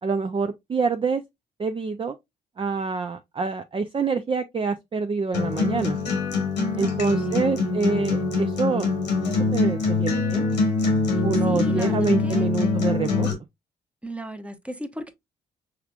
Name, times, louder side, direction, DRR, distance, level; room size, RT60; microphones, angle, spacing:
voice 1, 0.0-1.2 1.6-2.2 2.6-6.0 6.8-8.9 9.2-10.5 11.2-13.3, right 4 dB, 25° right, 0.5 m, -26 dB
Acoustic guitar, 5.3-13.3, left 3 dB, 90° left, 1.2 m, -24 dB
voice 2, 6.8-7.7 11.1-12.5 14.0-15.1, equal, 5° right, 0.9 m, -37 dB
5.6 x 3.4 x 2.4 m
hypercardioid pair, 45°, 21 cm